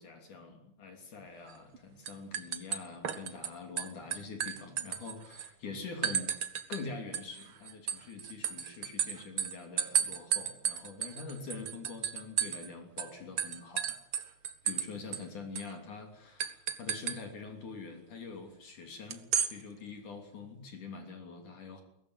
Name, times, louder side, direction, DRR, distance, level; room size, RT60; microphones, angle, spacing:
voice 1, 0.0-14.0 14.6-19.2 19.5-21.8, left 4 dB, 55° left, 4 dB, 4.5 m, -45 dB
sound 1, 1.5-1.8 2.1-3.5 3.8-5.5 6.0-6.8 7.1-12.7 13.0-13.1 13.4-14.9 15.1-15.2 15.6-15.7 16.4-17.2 19.1-19.5, right 8 dB, 65° right, 1.4 m, -33 dB
22.5 x 18.5 x 8.1 m, 0.75 s
omnidirectional pair, 4.3 m